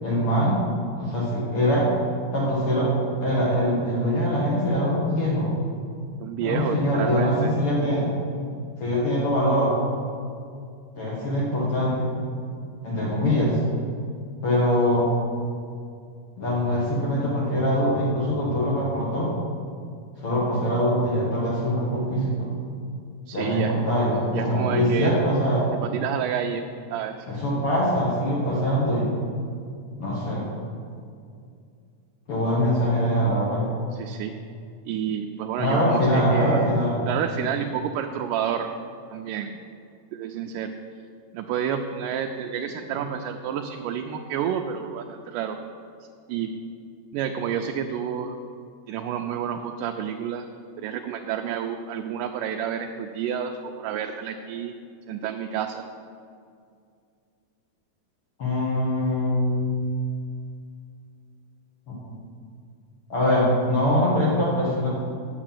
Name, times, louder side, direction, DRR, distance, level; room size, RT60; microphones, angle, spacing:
voice 1, 0.0-0.6 1.0-1.9 2.3-2.9 3.2-5.5 6.4-8.1 8.8-9.7 11.0-12.1 12.8-13.6 14.4-15.1 16.4-19.3 20.2-22.5 23.3-25.7 27.3-29.1 30.0-30.5 32.3-33.6 35.6-36.9 42.9-43.0 58.4-59.8 61.9-62.0 63.1-64.9, equal, 50° left, -6 dB, 2.4 m, -23 dB
voice 2, 6.2-7.5 23.3-23.8 24.3-25.1 25.8-26.6 26.9-27.2 33.9-34.4 34.9-36.7 37.1-38.7 39.1-39.6 40.1-40.8 41.3-45.6 46.3-46.7 47.1-48.4 48.9-50.5 50.8-54.7 55.1-55.9, right 8 dB, 90° right, 3 dB, 2.2 m, -29 dB
8.8 x 6.8 x 7.5 m, 2.3 s
omnidirectional pair, 3.7 m